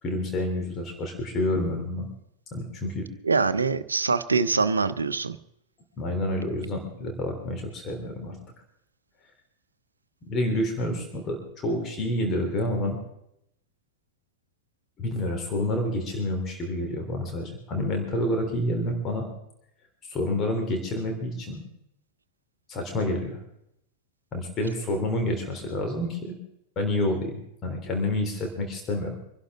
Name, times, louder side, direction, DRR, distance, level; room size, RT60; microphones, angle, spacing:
voice 1, 0.0-2.1 2.5-3.1 6.0-8.4 10.3-13.0 15.0-19.3 20.0-21.6 22.7-23.4 24.3-26.4 26.8-29.2, left 1 dB, 30° left, 3.5 m, -28 dB
voice 2, 3.2-5.4, right 4 dB, 75° right, 0.8 m, -24 dB
25.5 x 11.5 x 3.7 m
figure-of-eight pair, 90°, 0 cm